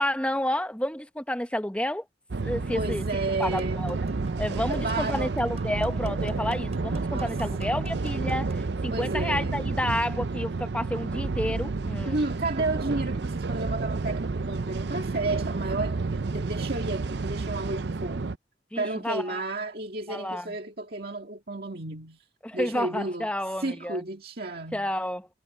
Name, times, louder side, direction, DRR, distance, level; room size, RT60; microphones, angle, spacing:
voice 1, 0.0-2.0 2.4-3.0 3.4-4.0 4.4-12.2 18.7-19.4 20.1-20.5 22.4-24.0 24.7-25.3, left 1 dB, 5° left, 1.0 m, -30 dB
sound 1, 2.3-18.4, right 3 dB, 70° right, 0.6 m, -30 dB
voice 2, 2.7-3.8 4.7-5.4 7.1-8.0 8.9-9.6 12.0-18.3 18.8-22.2 22.5-23.3 23.6-24.9, right 2 dB, 55° right, 2.1 m, -32 dB
sound 2, 3.4-8.5, right 4 dB, 35° right, 5.1 m, -50 dB
head